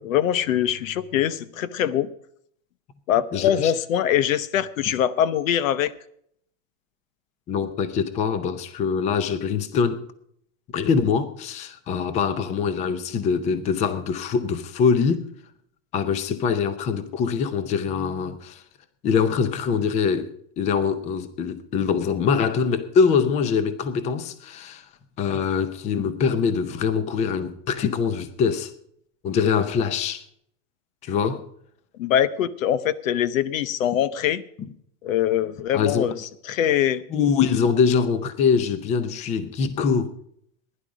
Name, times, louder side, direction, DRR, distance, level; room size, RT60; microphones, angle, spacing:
voice 1, 0.0-2.1 3.1-5.9 32.0-34.4 35.0-36.1 36.5-37.0, left 10 dB, 80° left, 0.9 m, -23 dB
voice 2, 3.3-3.7 7.5-10.0 10.7-15.3 15.9-18.6 19.0-24.8 25.2-28.7 29.2-30.2 31.0-31.4 34.6-34.7 35.7-36.1 37.1-40.1, left 6 dB, 15° left, 0.6 m, -23 dB
16.0 x 10.5 x 4.9 m
supercardioid pair, 160°, 39 cm